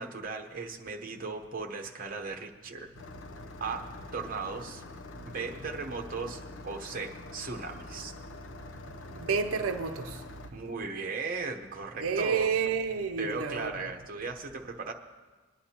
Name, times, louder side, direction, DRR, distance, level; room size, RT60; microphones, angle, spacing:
voice 1, 0.0-2.9 3.6-4.8 5.3-8.1 10.5-12.5 13.2-14.9, right 4 dB, 40° right, 0.9 m, -37 dB
Engine starting, 2.9-10.5, left 2 dB, 65° left, 0.7 m, -45 dB
voice 2, 8.8-10.2 12.0-13.7, right 5 dB, 90° right, 0.6 m, -30 dB
21.5 x 10.0 x 2.9 m
head